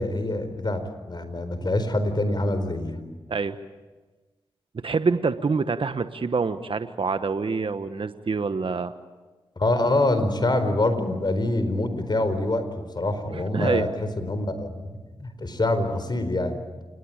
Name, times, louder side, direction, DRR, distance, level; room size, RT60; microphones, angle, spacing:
voice 1, 0.0-3.0 9.6-14.9 15.2-16.6, left 2 dB, 45° left, 10 dB, 4.6 m, -25 dB
voice 2, 4.8-8.9 13.3-13.9, right 4 dB, 60° right, 10 dB, 1.2 m, -26 dB
28.0 x 20.5 x 9.0 m, 1.2 s
cardioid pair, 40°, 10 cm